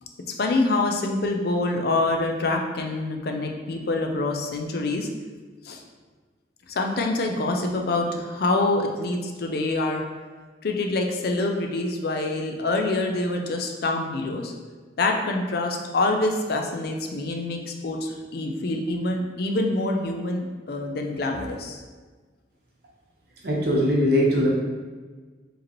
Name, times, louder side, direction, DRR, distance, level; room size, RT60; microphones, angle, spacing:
voice 1, 0.4-5.1 5.6-5.8 6.7-10.0 10.6-14.5 15.0-21.8, left 2 dB, 60° left, 3 dB, 0.5 m, -26 dB
voice 2, 23.4-24.5, equal, 60° right, -3 dB, 0.9 m, -20 dB
4.8 x 3.0 x 3.0 m, 1.4 s
head